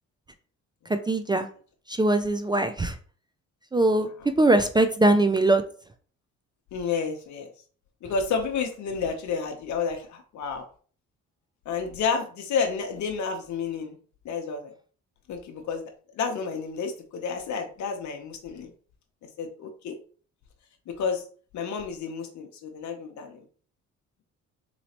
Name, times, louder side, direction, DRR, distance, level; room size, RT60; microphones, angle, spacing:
voice 1, 0.9-1.5 1.9-3.0 3.7-4.1 4.4-5.6, right 2 dB, 15° right, 8 dB, 0.3 m, -21 dB
voice 2, 6.7-7.5 8.0-10.7 11.7-14.0 14.2-14.7 15.3-15.8 16.2-18.7 19.4-20.0 20.9-21.3 21.5-23.4, left 5 dB, 70° left, 4 dB, 0.8 m, -30 dB
4.0 x 3.0 x 2.8 m, 0.42 s
cardioid pair, 90°, 30 cm